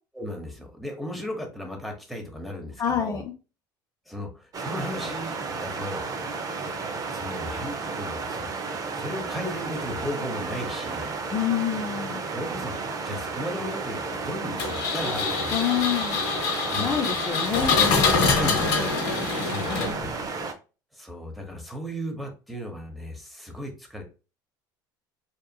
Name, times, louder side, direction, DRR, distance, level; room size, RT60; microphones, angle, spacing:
voice 1, 0.1-3.2 4.1-6.0 7.1-8.5 8.9-11.1 12.3-15.8 16.7-17.0 17.3-17.5 18.0-18.9 19.4-19.7 20.9-24.0, equal, ahead, 1 dB, 0.9 m, -35 dB
voice 2, 2.8-3.3 11.3-12.2 15.5-16.2 16.8-18.4, left 8 dB, 35° left, 3 dB, 0.4 m, -27 dB
sound 1, 4.5-20.5, right 4 dB, 35° right, 0.5 m, -33 dB
Engine, 14.6-20.3, left 5 dB, 70° left, 0.8 m, -25 dB
2.8 x 2.3 x 2.2 m, 0.33 s
hypercardioid pair, 75°, 10 cm